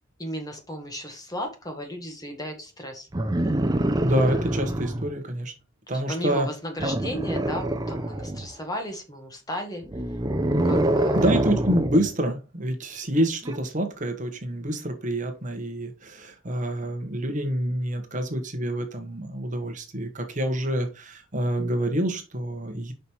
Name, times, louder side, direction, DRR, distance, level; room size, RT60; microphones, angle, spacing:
voice 1, 0.2-3.1 5.9-9.8 10.6-11.2, equal, 20° left, 3 dB, 1.4 m, -35 dB
sound 1, 3.1-5.1 6.8-8.5 9.8-12.1 13.4-13.6, right 1 dB, 20° right, 0.6 m, -25 dB
voice 2, 4.0-5.5 5.9-6.5 11.1-22.9, right 1 dB, 40° right, 5 dB, 1.2 m, -27 dB
5.6 x 5.1 x 4.5 m, 0.29 s
head